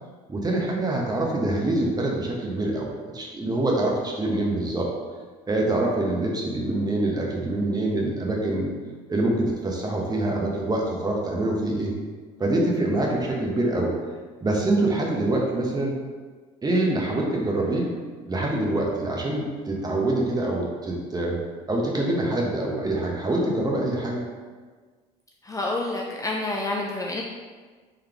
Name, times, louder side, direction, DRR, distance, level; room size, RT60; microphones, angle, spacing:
voice 1, 0.3-2.9 3.1-4.9 5.5-8.7 9.1-11.9 12.4-13.9 14.4-15.9 16.6-18.0 18.3-21.4 21.7-24.2, right 2 dB, 20° right, -1 dB, 1.0 m, -25 dB
voice 2, 25.4-27.2, left 2 dB, 20° left, -1 dB, 0.4 m, -28 dB
4.0 x 3.1 x 2.9 m, 1.5 s
supercardioid pair, 75°, 17 cm